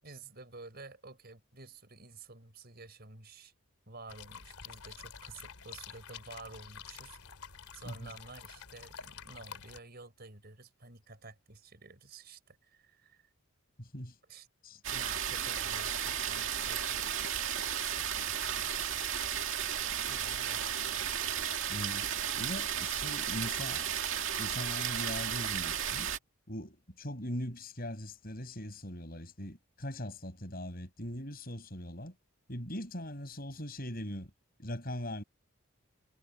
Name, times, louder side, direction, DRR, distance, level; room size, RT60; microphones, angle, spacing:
voice 1, 0.0-3.5 3.9-7.2 7.7-13.3 14.3-18.8 20.1-21.2, right 3 dB, 45° right, 5.4 m, -51 dB
sound 1, 4.1-9.8, left 7 dB, 85° left, 3.2 m, -49 dB
voice 2, 13.8-14.1 14.6-14.8 21.7-23.9 24.4-26.1 26.5-32.1 32.5-34.3 34.6-35.2, left 1 dB, 40° left, 7.9 m, -40 dB
sound 2, 14.8-26.2, right 9 dB, 60° right, 2.3 m, -34 dB
head